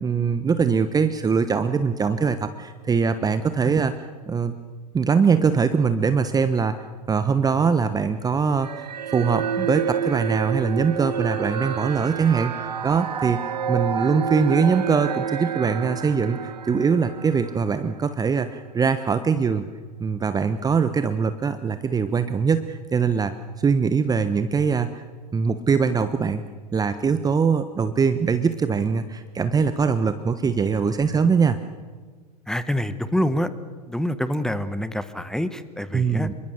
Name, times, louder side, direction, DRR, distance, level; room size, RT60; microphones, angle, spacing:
voice 1, 0.0-4.5 4.9-8.9 9.1-19.6 20.0-23.3 23.6-25.0 25.3-26.4 26.7-31.6 35.9-36.3, right 5 dB, 20° right, 11 dB, 1.1 m, -22 dB
sound 1, 8.6-18.1, right 8 dB, 80° right, 1.1 m, -29 dB
voice 2, 32.5-33.5 33.9-36.3, equal, 5° left, 12 dB, 1.4 m, -26 dB
26.0 x 23.0 x 6.7 m, 1.4 s
hypercardioid pair, 90°, 21 cm